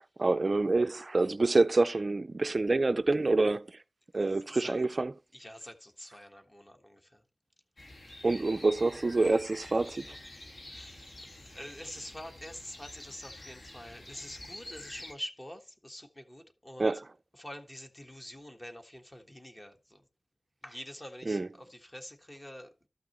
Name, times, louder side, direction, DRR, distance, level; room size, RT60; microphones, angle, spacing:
voice 1, 0.0-3.8 4.1-5.1 8.2-10.2 16.8-17.1 21.3-21.5, right 3 dB, 45° right, 0.3 m, -27 dB
voice 2, 4.5-4.8 5.3-7.2 10.7-11.2 11.5-16.9 17.4-20.0 20.6-22.7, equal, 20° left, 1.3 m, -46 dB
sound 1, 7.8-15.1, left 1 dB, 55° left, 1.8 m, -48 dB
13.0 x 6.0 x 3.0 m
wide cardioid pair, 75°, 0 cm